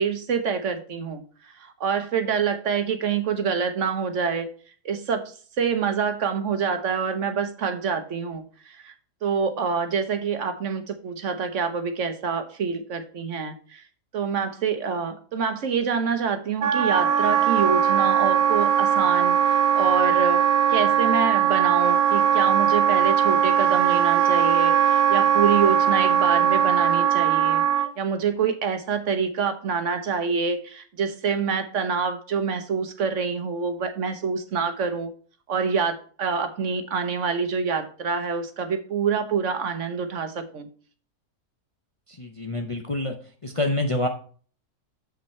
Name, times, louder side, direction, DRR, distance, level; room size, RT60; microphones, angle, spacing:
voice 1, 0.0-4.5 4.8-8.9 9.2-13.8 14.1-20.4 20.7-27.6 28.0-35.1 35.5-40.7, right 6 dB, 60° right, 8 dB, 1.2 m, -26 dB
Wind instrument woodwind instrument, 16.6-27.9, right 8 dB, 80° right, 1.2 m, -20 dB
voice 2, 42.2-43.1 43.4-44.1, left 1 dB, 30° left, 3 dB, 0.6 m, -26 dB
7.5 x 5.6 x 4.3 m, 0.42 s
omnidirectional pair, 1.5 m